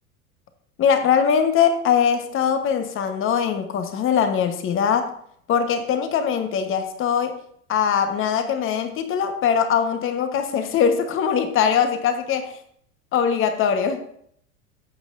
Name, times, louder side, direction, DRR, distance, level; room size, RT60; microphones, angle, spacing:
voice 1, 0.8-5.1 5.5-7.4 7.7-12.5 13.1-14.0, left 7 dB, 30° left, 8 dB, 1.3 m, -21 dB
14.0 x 8.3 x 2.7 m, 0.66 s
figure-of-eight pair, 85°, 43 cm